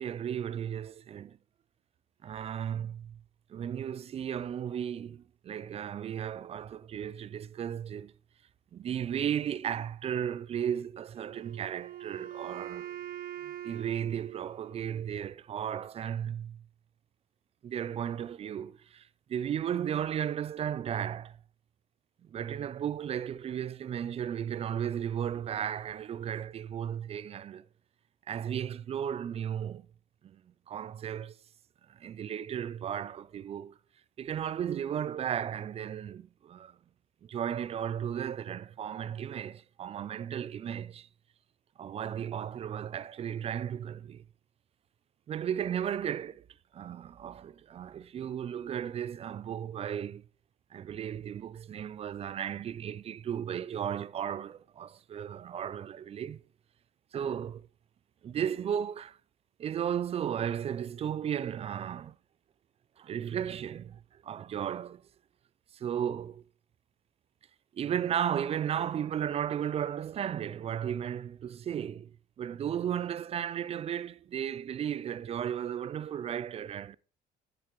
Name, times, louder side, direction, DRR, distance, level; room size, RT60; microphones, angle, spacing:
voice 1, 0.0-1.4 2.2-3.2 3.5-8.1 8.7-13.0 13.4-16.6 17.6-21.4 22.2-27.7 28.3-29.9 30.2-30.4 30.7-31.4 31.9-33.7 34.2-36.8 37.2-41.1 41.8-44.2 45.3-46.4 46.7-50.2 50.7-56.4 57.1-57.7 58.2-59.2 59.6-62.2 63.0-65.0 65.7-66.4 67.7-72.1 72.4-77.0, right 9 dB, 35° right, 0.4 m, -35 dB
Wind instrument woodwind instrument, 11.1-15.2, right 12 dB, 60° right, 0.8 m, -43 dB
9.6 x 8.7 x 3.0 m
cardioid pair, 110°, 17 cm